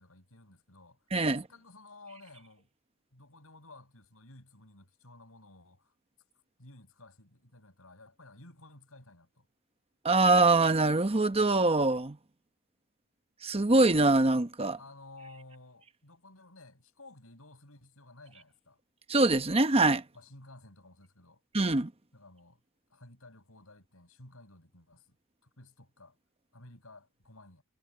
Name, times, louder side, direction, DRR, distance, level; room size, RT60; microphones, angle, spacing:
voice 1, 0.0-2.7 3.1-6.0 6.6-9.5 14.8-18.8 20.1-21.4 22.1-22.6 22.9-25.2 25.4-26.2 26.5-27.6, left 2 dB, 80° left, 8.0 m, -54 dB
voice 2, 1.1-1.4 10.0-12.2 13.4-14.8 19.1-20.0 21.5-21.9, right 2 dB, 30° right, 0.9 m, -24 dB
head